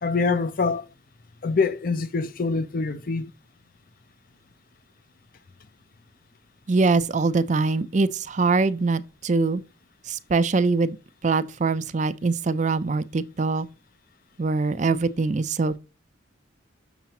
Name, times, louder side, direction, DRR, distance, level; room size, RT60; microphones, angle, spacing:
voice 1, 0.0-0.9 1.4-3.3, left 4 dB, 45° left, 0.6 m, -25 dB
voice 2, 6.7-9.6 10.1-11.0 11.2-13.7 14.4-15.8, right 3 dB, 35° right, 0.4 m, -23 dB
7.1 x 6.6 x 2.9 m
head